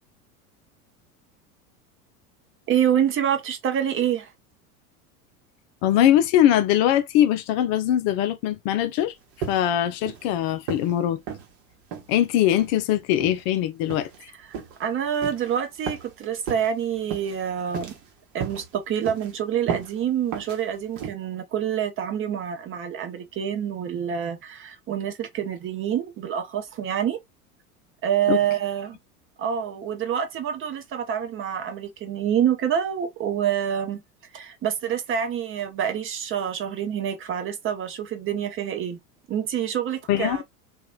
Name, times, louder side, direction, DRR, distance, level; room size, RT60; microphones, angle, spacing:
voice 1, 2.7-4.3 14.4-18.0 18.3-27.2 28.0-29.0 29.4-34.0 34.3-39.0 39.3-40.4, right 9 dB, 30° right, 0.6 m, -27 dB
voice 2, 5.8-9.1 9.5-11.2 12.1-14.1 28.3-28.4 40.1-40.4, left 11 dB, 45° left, 0.5 m, -21 dB
sound 1, 9.4-9.8 10.1-10.3 10.7-10.9 11.3-11.5 11.9-12.1 12.6-12.8 13.2-13.4 13.9-14.2 14.5-14.8 15.2-15.4 15.9-16.1 16.5-16.7 17.1-17.4 17.7-18.1 18.4-18.7 19.0-19.3 19.7-19.9 20.3-20.6 21.0-21.1, right 7 dB, 50° right, 1.0 m, -33 dB
2.9 x 2.3 x 2.3 m
figure-of-eight pair, 80°, 44 cm